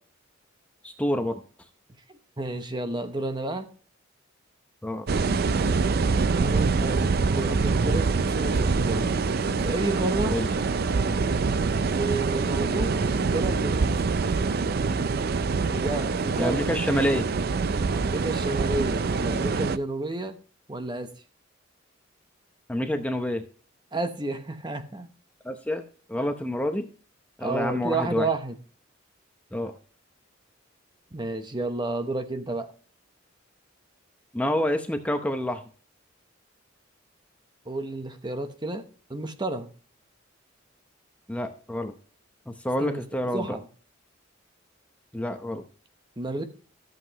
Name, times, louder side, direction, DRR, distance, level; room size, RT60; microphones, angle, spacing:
voice 1, 0.8-1.4 4.8-5.1 10.3-10.5 16.3-17.3 22.7-23.4 25.4-25.8 26.1-26.9 27.4-28.3 29.5-29.7 34.3-35.6 41.3-41.9 42.5-43.6 45.1-45.6, left 1 dB, 5° left, 0.7 m, -28 dB
voice 2, 2.1-3.7 6.3-9.1 9.6-10.4 11.9-13.0 13.2-13.9 15.7-16.7 17.9-20.4 20.7-21.1 23.9-25.1 27.4-28.6 31.1-32.7 37.7-39.7 42.8-43.0 43.3-43.7 46.2-46.4, right 2 dB, 25° right, 0.9 m, -31 dB
sound 1, 5.1-19.8, right 4 dB, 50° right, 0.5 m, -25 dB
14.0 x 7.6 x 3.0 m
head